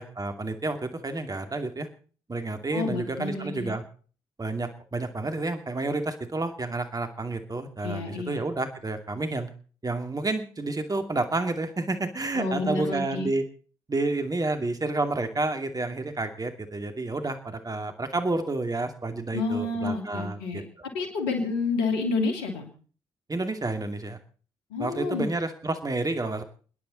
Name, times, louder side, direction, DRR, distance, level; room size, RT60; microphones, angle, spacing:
voice 1, 0.0-1.9 2.3-3.8 4.4-9.5 9.8-13.4 13.9-20.6 23.3-24.2 24.8-26.4, right 2 dB, 30° right, 7 dB, 2.5 m, -30 dB
voice 2, 2.7-3.7 7.8-8.4 12.3-13.3 19.3-20.6 20.9-22.7 24.7-25.3, left 3 dB, 85° left, 4 dB, 2.7 m, -29 dB
29.5 x 10.5 x 4.1 m, 0.41 s
hypercardioid pair, 45°, 13 cm